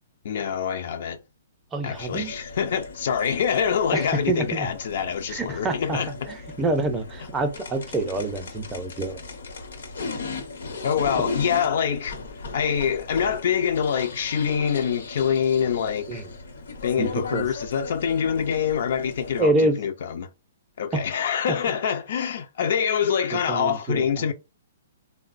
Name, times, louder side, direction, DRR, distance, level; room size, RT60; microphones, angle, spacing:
voice 1, 0.2-1.2 1.8-6.1 10.8-16.2 16.8-20.3 20.8-24.3, left 7 dB, 60° left, 0.4 m, -25 dB
voice 2, 1.7-2.3 3.9-4.7 5.3-9.2 11.2-11.4 16.1-16.3 17.0-17.4 19.4-19.8 23.3-24.3, right 2 dB, 15° right, 0.4 m, -27 dB
sound 1, 1.9-19.4, left 3 dB, 85° left, 0.8 m, -38 dB
3.6 x 2.0 x 2.4 m
hypercardioid pair, 160°, 0 cm